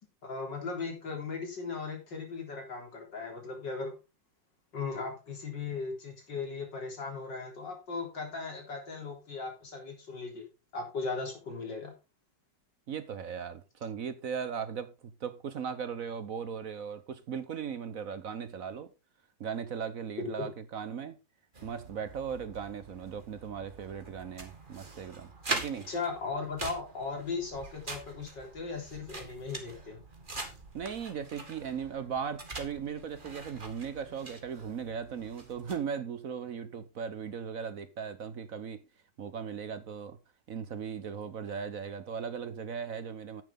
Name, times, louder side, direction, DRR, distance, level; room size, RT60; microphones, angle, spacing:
voice 1, 0.2-3.9 4.7-10.5 10.7-11.9 20.2-20.5 25.9-30.0, left 4 dB, 75° left, 4.3 m, -37 dB
voice 2, 12.9-18.9 19.4-21.2 21.6-25.9 30.7-38.8 39.2-40.2 40.5-43.4, right 7 dB, 55° right, 1.2 m, -38 dB
sound 1, 21.5-35.8, right 3 dB, 30° right, 2.1 m, -43 dB
10.5 x 9.2 x 3.7 m
omnidirectional pair, 1.9 m